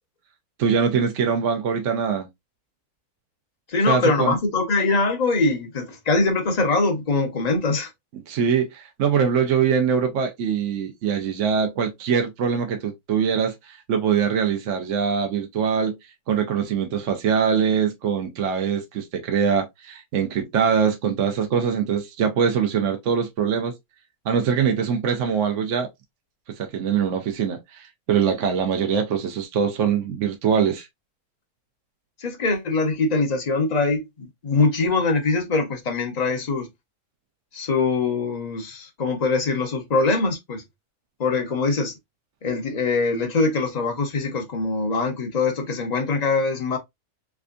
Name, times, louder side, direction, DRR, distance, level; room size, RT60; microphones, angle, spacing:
voice 1, 0.6-2.3 3.9-4.3 8.3-15.9 16.3-23.7 24.3-25.9 26.6-30.9, right 7 dB, 60° right, 1.0 m, -23 dB
voice 2, 3.7-7.9 32.2-36.7 37.5-40.6 41.2-41.9 42.4-46.8, left 3 dB, 35° left, 0.8 m, -23 dB
3.5 x 3.3 x 2.5 m
omnidirectional pair, 1.6 m